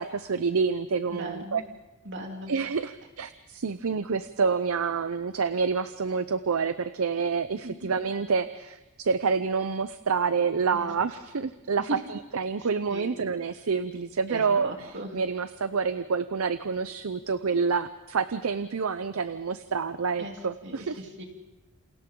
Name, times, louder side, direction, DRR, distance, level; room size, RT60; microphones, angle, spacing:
voice 1, 0.0-1.6 2.5-21.0, right 5 dB, 70° right, 12 dB, 0.6 m, -28 dB
voice 2, 1.1-1.6 2.0-2.5 7.6-7.9 10.7-10.9 11.8-12.0 12.6-13.1 14.3-15.1 20.2-20.4 20.6-21.2, right 1 dB, 55° right, 2 dB, 3.1 m, -38 dB
28.5 x 28.0 x 3.8 m, 1.1 s
head